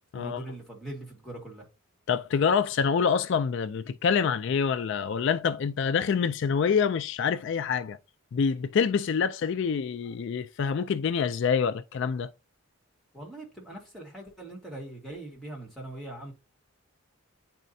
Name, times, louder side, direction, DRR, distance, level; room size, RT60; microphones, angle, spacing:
voice 1, 0.1-1.6 13.1-16.3, right 1 dB, ahead, 2.2 m, -41 dB
voice 2, 2.1-8.0 8.3-12.3, left 6 dB, 55° left, 0.3 m, -26 dB
9.1 x 4.2 x 2.6 m
head